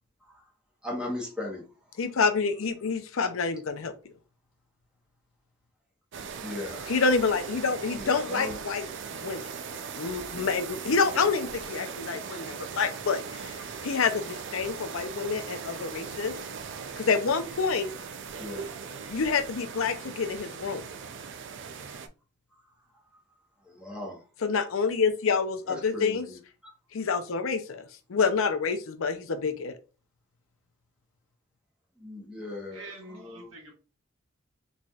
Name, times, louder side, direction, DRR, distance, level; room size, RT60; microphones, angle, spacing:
voice 1, 0.8-1.7 6.4-6.9 8.0-8.6 18.4-18.8 23.7-24.2 25.7-26.4 26.6-26.7 32.0-33.5, left 2 dB, 5° right, 1.0 m, -37 dB
voice 2, 2.0-3.9 6.9-8.9 9.2-9.4 10.0-16.3 17.0-17.9 19.1-20.8 24.4-26.3 26.9-29.7, left 5 dB, 75° left, 0.5 m, -27 dB
sound 1, 6.1-22.1, right 6 dB, 60° right, 0.4 m, -39 dB
voice 3, 32.7-33.7, right 2 dB, 75° right, 1.3 m, -45 dB
4.0 x 3.2 x 2.3 m
head